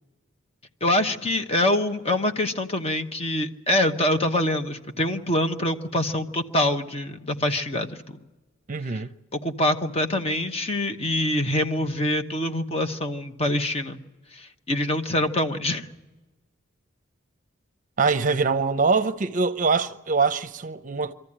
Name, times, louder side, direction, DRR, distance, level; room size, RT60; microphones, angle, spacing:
voice 1, 0.8-8.2 9.3-14.0 14.3-15.9, left 1 dB, 30° left, 1.1 m, -25 dB
voice 2, 8.7-9.1 18.0-21.1, right 4 dB, 40° right, 0.7 m, -23 dB
24.5 x 14.5 x 9.9 m
head